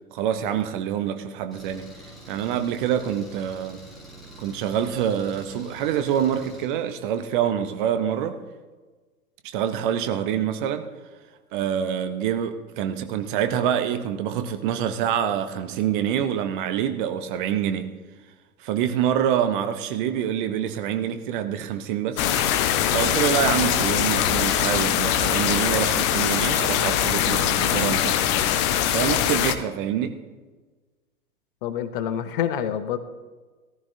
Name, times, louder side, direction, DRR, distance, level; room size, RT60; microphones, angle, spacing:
voice 1, 0.1-1.9 2.3-3.8 4.4-8.4 9.5-10.9 11.5-17.9 18.6-22.3 22.9-28.3 28.9-30.2, right 9 dB, 35° right, 9 dB, 0.9 m, -26 dB
Engine, 1.5-6.6, right 1 dB, ahead, 5.2 m, -45 dB
sound 1, 22.2-29.6, left 10 dB, 20° left, 0.5 m, -22 dB
voice 2, 31.6-33.0, left 9 dB, 35° left, 11 dB, 0.8 m, -27 dB
18.5 x 14.0 x 2.8 m, 1.3 s
figure-of-eight pair, 100°, 43 cm